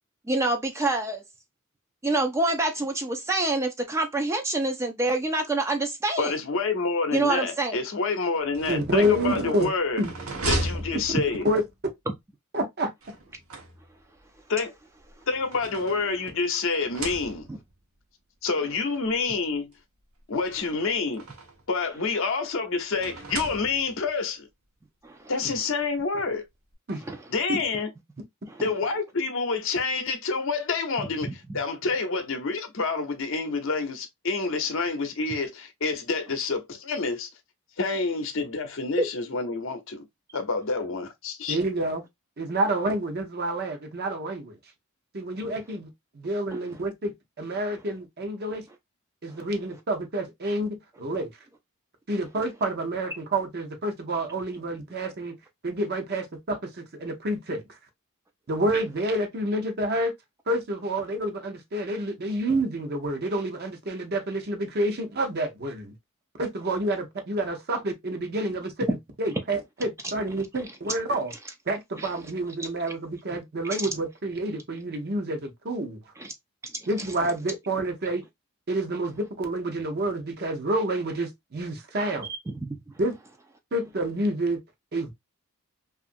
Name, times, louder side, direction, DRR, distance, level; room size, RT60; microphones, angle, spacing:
voice 1, 0.3-1.2 2.0-6.3 7.1-7.8 17.5-17.6 25.0-25.2 27.1-27.2 28.5-28.6 39.0-39.1 46.5-46.6 72.0-72.1 76.2-76.3 82.6-82.8, right 2 dB, 15° right, 0.3 m, -26 dB
voice 2, 6.2-10.0 10.5-11.5 14.5-14.7 15.3-17.5 18.4-19.7 20.3-21.3 21.7-24.5 25.3-26.4 27.3-27.9 28.6-37.3 37.8-40.1 40.3-41.6, left 4 dB, 65° left, 0.7 m, -28 dB
sound 1, 8.4-11.7 13.0-14.2 15.0-16.4 16.8-17.7 18.7-18.8 19.1-19.2 20.4-21.7 22.9-24.1, right 2 dB, 85° right, 0.9 m, -36 dB
voice 3, 8.7-9.7 10.0-10.1 10.9-11.0 11.4-11.6 12.5-12.9 26.9-27.0 41.5-42.0 42.4-44.6 45.1-45.9 46.1-48.6 49.2-51.3 52.1-55.4 55.6-57.8 58.5-60.1 60.5-65.9 66.4-71.3 71.7-76.0 76.9-78.2 78.7-82.3 83.0-83.1 83.7-84.6 84.9-85.1, right 1 dB, 50° right, 0.7 m, -28 dB
2.8 x 2.5 x 2.5 m
head